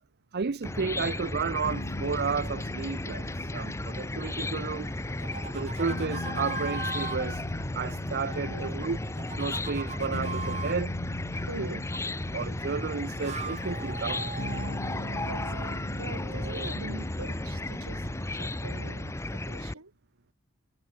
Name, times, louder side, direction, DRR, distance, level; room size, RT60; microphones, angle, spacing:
voice 1, 0.3-4.9 5.5-7.4 7.7-9.0 9.4-10.9 11.6-11.7 12.3-14.3, right 5 dB, 50° right, 0.6 m, -32 dB
Chicken rooster / Cricket, 0.6-19.7, left 1 dB, 15° left, 0.8 m, -34 dB
sound 1, 1.6-18.6, left 1 dB, 70° left, 1.6 m, -41 dB
sound 2, 5.0-7.2 8.7-10.8 12.9-16.9, right 5 dB, 35° right, 4.8 m, -41 dB
voice 2, 8.4-9.0 11.5-11.9 15.3-19.9, right 2 dB, 90° right, 3.0 m, -43 dB
head